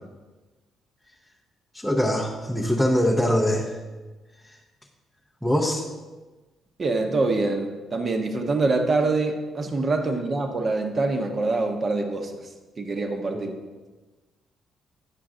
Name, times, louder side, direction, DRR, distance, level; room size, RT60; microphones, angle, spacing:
voice 1, 1.7-3.8 4.4-4.6 5.4-5.9 13.3-13.5, equal, ahead, -2 dB, 0.7 m, -23 dB
voice 2, 6.8-12.3 12.8-13.5, right 3 dB, 30° right, 5 dB, 0.9 m, -25 dB
9.9 x 6.7 x 3.9 m, 1.3 s
cardioid pair, 145°, 0 cm